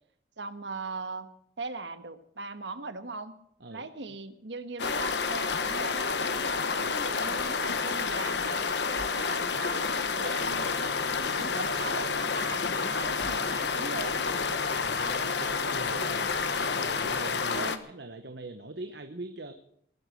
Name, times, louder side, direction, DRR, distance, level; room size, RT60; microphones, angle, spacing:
voice 1, 0.4-3.3 3.7-8.7 9.1-9.9 10.2-14.1 17.5-17.8, right 3 dB, 90° right, 10 dB, 1.4 m, -40 dB
sound 1, 4.8-17.8, left 5 dB, 75° left, 1.1 m, -29 dB
sound 2, 10.3-17.4, equal, 50° right, 3.9 m, -49 dB
voice 2, 14.8-16.3 16.7-19.5, right 2 dB, 70° right, 7 dB, 1.0 m, -42 dB
20.0 x 8.4 x 7.7 m, 0.70 s
head